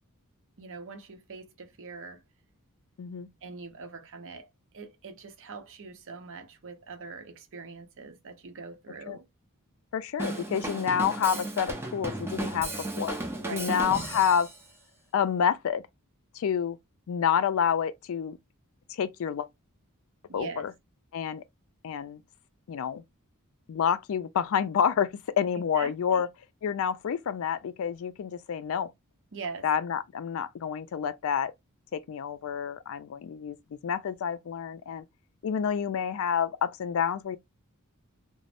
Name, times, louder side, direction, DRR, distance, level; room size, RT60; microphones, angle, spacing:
voice 1, 0.6-2.2 3.4-9.3 13.4-13.7 20.3-20.7 25.7-26.2 29.3-29.7, right 4 dB, 60° right, 0.7 m, -42 dB
voice 2, 3.0-3.3 9.1-9.2 9.9-13.2 13.5-14.5 15.1-15.8 16.3-16.8 17.1-18.4 18.9-19.5 20.3-20.7 21.1-21.4 21.8-22.2 22.7-23.0 23.7-26.3 26.6-28.9 29.6-31.5 31.9-33.6 33.8-35.0 35.4-37.4, left 7 dB, 65° left, 0.3 m, -28 dB
Drum kit / Drum, 10.2-14.6, right 2 dB, 10° right, 0.5 m, -34 dB
2.5 x 2.0 x 3.2 m
head